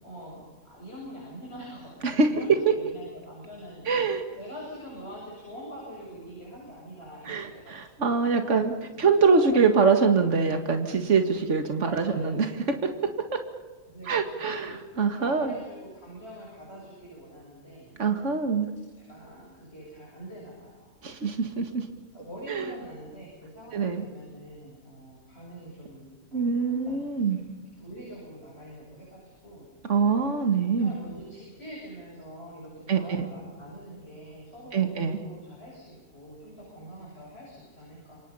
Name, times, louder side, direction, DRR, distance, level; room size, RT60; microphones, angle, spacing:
voice 1, 0.0-3.9 4.3-8.6 8.9-9.1 9.4-9.5 11.8-12.4 13.9-14.2 14.6-18.0 18.8-20.9 22.1-30.2 30.6-38.2, equal, 45° left, -4 dB, 7.6 m, -45 dB
voice 2, 3.9-4.2 7.3-13.4 14.1-15.5 18.0-18.7 21.0-21.9 22.5-22.7 23.7-24.1 26.3-27.4 29.9-30.9 32.9-33.3 34.7-35.2, right 5 dB, 60° right, 6 dB, 2.2 m, -24 dB
28.0 x 25.0 x 5.6 m, 1.3 s
omnidirectional pair, 1.4 m